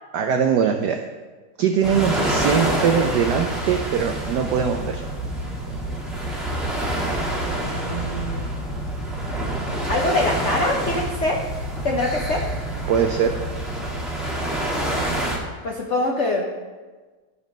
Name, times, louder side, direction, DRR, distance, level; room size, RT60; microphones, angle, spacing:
voice 1, 0.1-1.0 1.6-5.0 12.9-13.3, right 7 dB, 85° right, 5 dB, 0.9 m, -21 dB
sound 1, 1.8-15.4, right 1 dB, ahead, 1.1 m, -27 dB
voice 2, 7.6-8.5 9.9-11.4 11.8-12.4 15.6-16.5, left 2 dB, 80° left, -1 dB, 0.6 m, -24 dB
11.0 x 4.2 x 5.2 m, 1.4 s
omnidirectional pair, 2.4 m